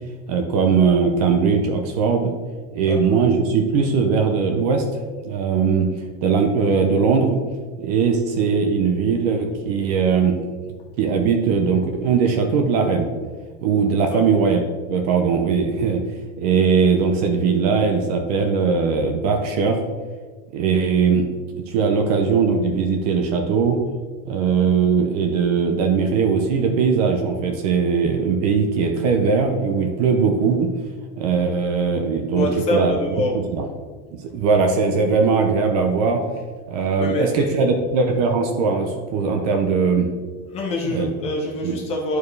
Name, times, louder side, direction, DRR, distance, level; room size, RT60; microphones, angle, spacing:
voice 1, 0.3-2.3 2.7-4.8 5.2-5.9 6.2-7.4 7.8-10.4 11.0-13.1 13.6-14.6 14.9-16.0 16.4-19.8 20.5-21.3 21.7-23.8 24.2-30.7 31.2-32.9 33.3-33.7 34.1-36.2 36.7-40.1 40.8-41.1 41.6-41.8, right 5 dB, 30° right, 4 dB, 0.5 m, -20 dB
voice 2, 32.3-33.3 37.0-37.7 40.5-42.2, left 1 dB, 15° left, -1 dB, 0.5 m, -25 dB
10.5 x 4.6 x 3.2 m, 1.5 s
supercardioid pair, 180°, 38 cm